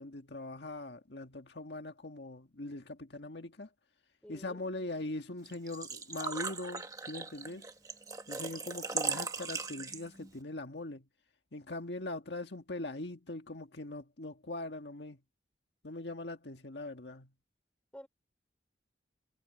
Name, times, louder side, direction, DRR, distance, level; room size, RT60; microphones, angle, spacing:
voice 1, 0.0-3.7 4.3-7.6 8.3-11.1 11.5-15.2 15.8-17.3, left 2 dB, 70° left, 1.7 m, -41 dB
voice 2, 4.2-4.7 17.9-18.1, equal, 5° left, 4.3 m, -50 dB
Engine / Trickle dribble / Fill (with liquid), 5.5-10.3, right 4 dB, 20° right, 1.3 m, -38 dB
head